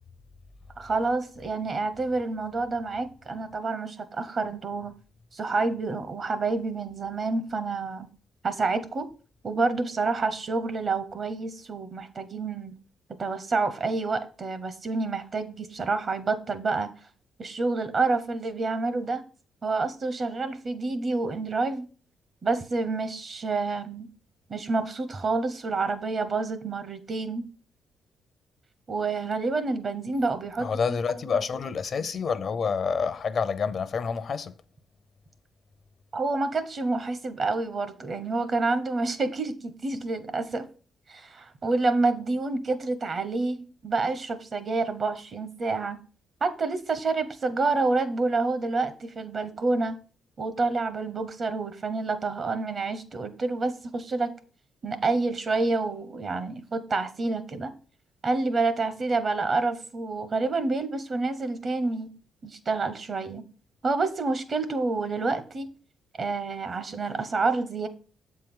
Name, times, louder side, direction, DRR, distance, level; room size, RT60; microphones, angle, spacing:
voice 1, 0.8-4.9 5.3-8.1 8.4-9.1 9.4-12.7 13.2-16.9 17.4-19.2 19.6-21.9 22.4-24.1 24.5-27.5 28.9-30.7 36.1-40.7 41.1-46.0 46.4-50.0 50.4-54.3 54.8-57.7 58.2-62.1 62.4-63.4 63.8-65.7 66.2-67.9, right 3 dB, 45° right, 0.9 m, -28 dB
voice 2, 30.6-34.5, left 5 dB, 50° left, 0.6 m, -28 dB
7.4 x 4.5 x 3.7 m
cardioid pair, 90°, 0 cm